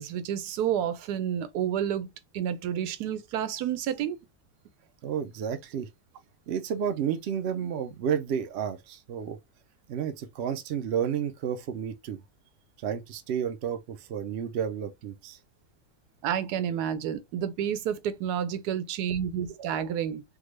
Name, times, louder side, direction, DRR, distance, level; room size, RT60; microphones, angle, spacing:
voice 1, 0.0-2.1 2.3-4.2 16.2-20.2, right 9 dB, 90° right, 1.2 m, -30 dB
voice 2, 5.0-5.9 6.5-9.4 9.9-12.2 12.8-15.4, right 8 dB, 65° right, 0.6 m, -31 dB
3.6 x 2.2 x 3.2 m
omnidirectional pair, 1.6 m